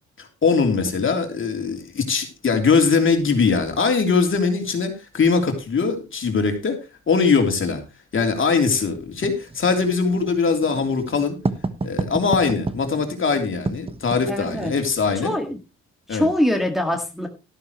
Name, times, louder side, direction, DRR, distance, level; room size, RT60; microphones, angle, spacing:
voice 1, 0.2-7.8 8.1-11.4 11.8-15.3 16.1-16.3, left 5 dB, 40° left, 5 dB, 3.3 m, -21 dB
Writing, 9.2-15.2, right 3 dB, 20° right, 1.0 m, -31 dB
voice 2, 14.3-14.7 15.2-15.6 16.1-17.3, left 1 dB, ahead, 3 dB, 1.8 m, -23 dB
13.0 x 11.5 x 3.1 m, 0.28 s
cardioid pair, 90°, 30 cm